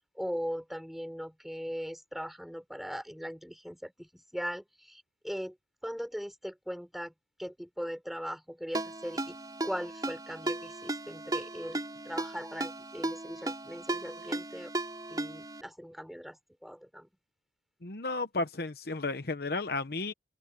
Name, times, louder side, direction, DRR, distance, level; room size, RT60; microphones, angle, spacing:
voice 1, 0.1-5.6 5.8-7.1 7.4-9.4 9.6-14.7 15.1-17.1, equal, ahead, 6.4 m, -39 dB
Ringtone, 8.7-15.6, right 2 dB, 20° right, 5.3 m, -36 dB
voice 2, 17.8-20.1, left 3 dB, 55° left, 1.0 m, -33 dB
open air
head